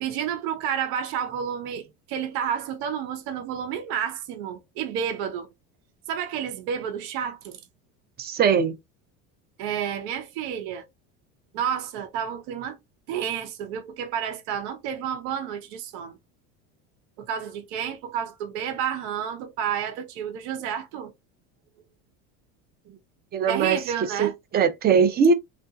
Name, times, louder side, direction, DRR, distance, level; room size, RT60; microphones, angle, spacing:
voice 1, 0.0-5.5 6.1-7.6 9.6-10.9 11.5-12.8 13.1-16.2 17.2-21.1 21.8-21.9 23.5-24.3, right 8 dB, 75° right, 0.8 m, -30 dB
voice 2, 8.2-8.7 23.3-23.8 24.2-25.3, right 6 dB, 30° right, 0.5 m, -20 dB
2.8 x 2.5 x 2.3 m
supercardioid pair, 110°, 34 cm